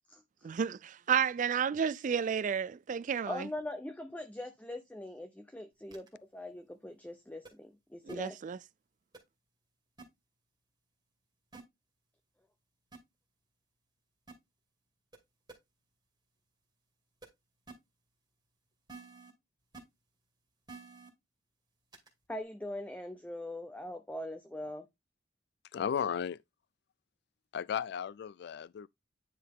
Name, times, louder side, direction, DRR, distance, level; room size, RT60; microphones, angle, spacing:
voice 1, 0.4-3.5 8.1-8.6, right 7 dB, 40° right, 0.3 m, -31 dB
voice 2, 3.3-6.1 6.3-8.4 22.3-24.9, left 1 dB, 10° left, 0.6 m, -41 dB
sound 1, 5.9-6.1 7.5-7.6 8.1-8.2 9.1-9.2 10.0-10.1 11.5-11.6 12.9-13.0 14.3-14.4 15.1-15.2 15.5-15.6 17.2-17.3 17.7-17.8 18.9-19.3 19.7-19.8 20.7-21.1 21.9-22.1, right 3 dB, 20° right, 2.2 m, -49 dB
voice 3, 25.7-26.4 27.5-28.9, left 8 dB, 60° left, 0.3 m, -34 dB
9.8 x 4.0 x 3.6 m
head